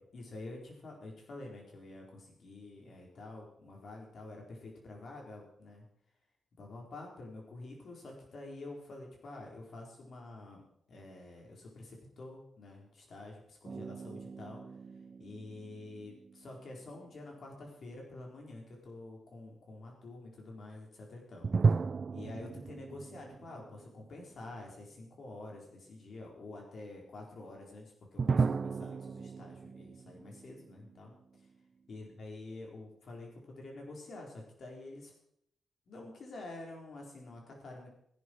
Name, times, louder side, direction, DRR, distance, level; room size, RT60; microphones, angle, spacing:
voice 1, 0.0-5.9 6.6-14.6 15.2-21.5 22.1-31.1 31.9-35.1 35.9-37.9, left 2 dB, 65° left, 0 dB, 4.7 m, -48 dB
sound 1, 13.6-16.9 21.4-24.5 24.8-24.9 28.2-31.5, right 5 dB, 50° right, 0.4 m, -35 dB
15.5 x 11.0 x 4.8 m, 0.72 s
cardioid pair, 75°, 0 cm